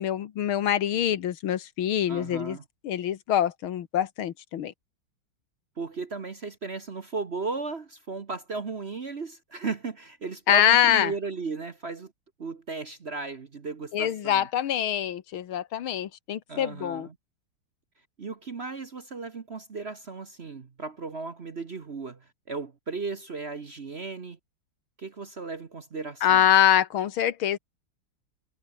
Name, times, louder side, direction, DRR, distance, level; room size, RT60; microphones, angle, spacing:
voice 1, 0.0-2.6 2.8-4.7 10.5-11.1 13.9-17.1 26.2-27.6, left 10 dB, 80° left, 2.0 m, -24 dB
voice 2, 2.1-2.6 5.8-12.1 12.4-14.5 16.5-17.1 18.2-24.4 25.0-26.5, right 4 dB, 40° right, 1.1 m, -35 dB
omnidirectional pair, 2.3 m